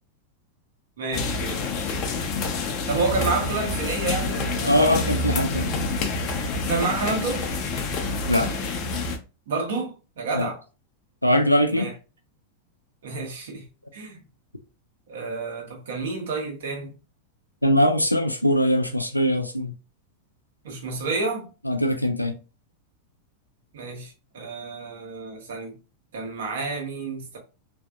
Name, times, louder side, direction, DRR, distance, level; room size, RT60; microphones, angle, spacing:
voice 1, 1.0-1.7 2.9-4.9 6.7-7.4 9.5-10.6 11.7-11.9 13.0-13.6 13.9-14.2 15.1-16.9 20.6-21.5 23.7-25.7 26.1-27.4, right 3 dB, 60° right, 0.9 m, -29 dB
sound 1, 1.1-9.2, left 3 dB, 40° left, 0.6 m, -27 dB
voice 2, 4.6-5.8 8.3-8.5 10.3-10.5 11.2-11.9 17.6-19.7 21.7-22.3, equal, 90° left, 0.3 m, -21 dB
3.3 x 2.5 x 2.3 m
figure-of-eight pair, 90°, 0 cm